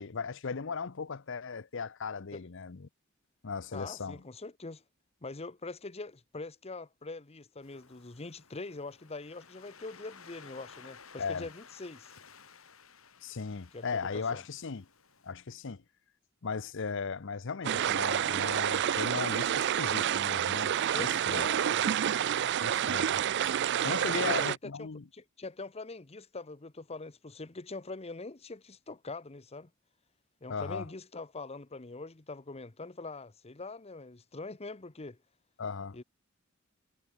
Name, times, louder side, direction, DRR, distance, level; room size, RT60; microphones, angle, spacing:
voice 1, 0.0-2.9 3.4-4.2 11.2-11.5 13.2-14.9 15.2-15.8 16.4-20.7 21.0-21.5 22.6-23.2 23.8-25.0 30.5-30.9 35.6-36.0, left 5 dB, 65° left, 0.8 m, -37 dB
voice 2, 3.7-4.8 5.2-12.2 13.7-14.4 20.9-21.9 24.1-29.7 30.4-35.2 35.9-36.0, left 3 dB, 30° left, 1.0 m, -43 dB
Waves surf, 7.6-15.3, left 6 dB, 90° left, 5.5 m, -56 dB
sound 1, 17.6-24.6, right 9 dB, 55° right, 0.4 m, -29 dB
head